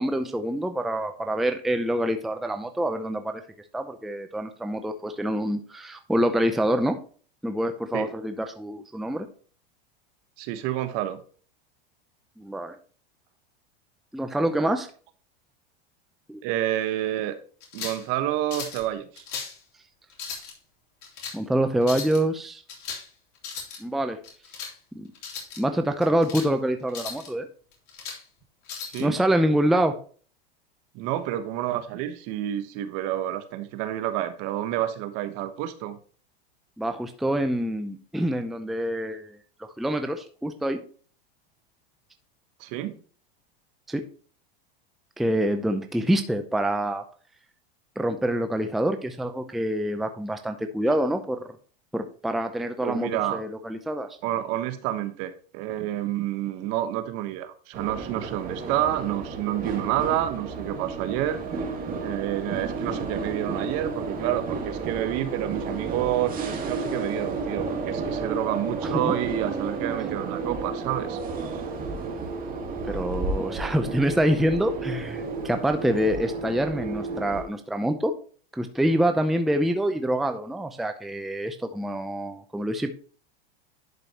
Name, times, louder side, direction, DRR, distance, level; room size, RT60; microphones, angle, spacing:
voice 1, 0.0-3.4 3.7-7.0 7.4-9.3 12.4-12.8 14.1-14.9 16.3-16.4 21.3-22.6 23.8-24.2 24.9-25.1 25.6-27.5 29.0-30.0 36.8-39.4 39.8-40.8 43.9-44.0 45.2-47.0 48.0-51.4 51.9-54.1 68.9-69.1 72.8-78.1 78.5-82.9, right 1 dB, ahead, 7 dB, 0.6 m, -26 dB
voice 2, 10.4-11.2 16.4-17.3 17.7-19.2 28.8-29.2 30.9-36.0 42.6-42.9 52.8-53.4 54.2-61.4 62.0-71.2, right 13 dB, 55° right, 10 dB, 1.2 m, -29 dB
sound 1, 17.6-18.1 18.5-18.8 19.2-19.6 20.1-20.5 21.0-21.4 21.8-22.2 22.7-23.1 23.4-23.8 24.2-24.7 25.2-25.6 26.0-26.5 26.9-27.3 27.7-28.2 28.7-29.0, left 6 dB, 50° left, 3.3 m, -37 dB
sound 2, 57.7-77.4, right 4 dB, 30° right, 1.7 m, -32 dB
11.0 x 5.1 x 2.9 m, 0.42 s
supercardioid pair, 120°, 30 cm